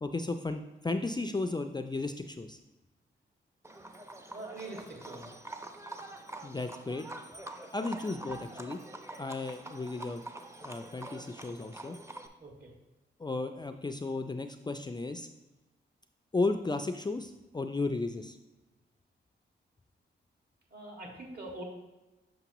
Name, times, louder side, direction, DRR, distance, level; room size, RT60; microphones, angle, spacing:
voice 1, 0.0-2.6 6.4-7.0 7.7-8.8 9.2-10.2 10.6-12.0 13.2-15.3 16.3-18.4, left 3 dB, 20° left, 7 dB, 0.4 m, -34 dB
Livestock farm animals working animals, 3.6-12.3, right 2 dB, 15° right, 0.7 m, -45 dB
voice 2, 4.3-5.3 12.4-12.7 20.7-21.6, right 2 dB, 50° right, -1 dB, 2.1 m, -43 dB
6.9 x 5.2 x 3.0 m, 1.1 s
cardioid pair, 55°, 20 cm